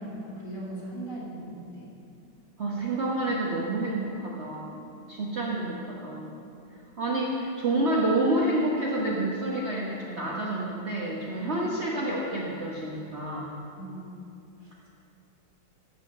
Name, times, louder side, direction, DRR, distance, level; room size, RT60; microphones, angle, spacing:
voice 1, 0.0-1.9 11.3-11.6 13.8-14.1 14.6-14.7, right 1 dB, 35° left, -6 dB, 3.4 m, -39 dB
voice 2, 2.6-4.7 5.1-6.3 7.0-13.6, right 1 dB, 40° right, -4 dB, 1.1 m, -28 dB
14.0 x 4.9 x 7.4 m, 2.6 s
omnidirectional pair, 2.2 m